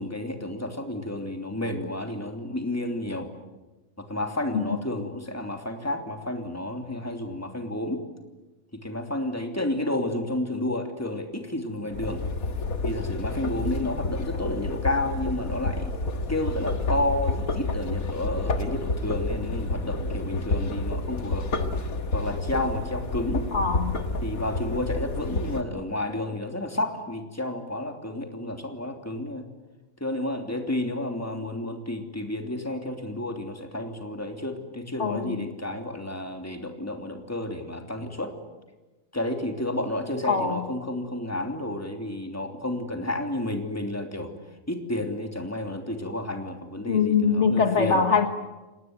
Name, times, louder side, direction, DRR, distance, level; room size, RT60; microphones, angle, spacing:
voice 1, 0.0-3.3 4.0-8.0 8.7-12.2 12.8-16.0 16.3-21.5 22.1-23.5 24.2-29.5 30.0-38.3 39.1-44.3 44.7-48.0, left 1 dB, 10° left, 4 dB, 3.1 m, -31 dB
sound 1, 11.9-25.6, left 2 dB, 80° left, 2.2 m, -29 dB
voice 2, 23.5-24.0 35.0-35.4 40.2-40.6 46.9-48.3, left 5 dB, 55° left, 6 dB, 1.8 m, -23 dB
29.0 x 20.0 x 9.4 m, 1.1 s
omnidirectional pair, 1.5 m